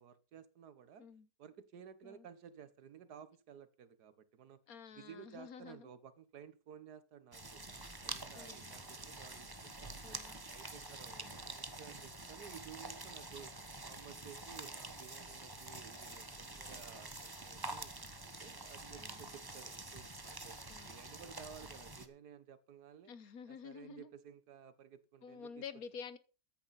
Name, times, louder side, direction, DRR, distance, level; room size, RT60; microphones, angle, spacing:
voice 1, 0.0-1.1 1.4-4.6 4.9-10.2 10.5-13.5 13.8-17.9 18.2-20.6 20.9-23.1 23.5-25.6, right 8 dB, 80° right, 1.7 m, -55 dB
voice 2, 4.7-5.9 8.3-8.7 10.0-10.4 11.1-11.3 19.0-19.2 20.7-21.0 23.1-24.1 25.2-26.2, left 6 dB, 65° left, 1.5 m, -50 dB
sound 1, 7.3-22.1, right 2 dB, 15° right, 1.1 m, -47 dB
14.0 x 10.0 x 4.1 m
omnidirectional pair, 1.7 m